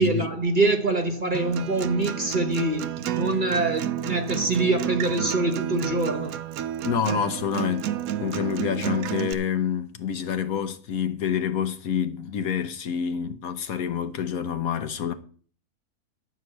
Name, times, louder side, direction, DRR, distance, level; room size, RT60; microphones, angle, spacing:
voice 1, 0.0-6.4, right 2 dB, 35° right, 1.1 m, -24 dB
Acoustic guitar, 1.3-9.3, right 11 dB, 70° right, 1.0 m, -31 dB
voice 2, 6.8-15.1, left 8 dB, 65° left, 1.2 m, -27 dB
11.5 x 4.8 x 7.9 m
omnidirectional pair, 1.7 m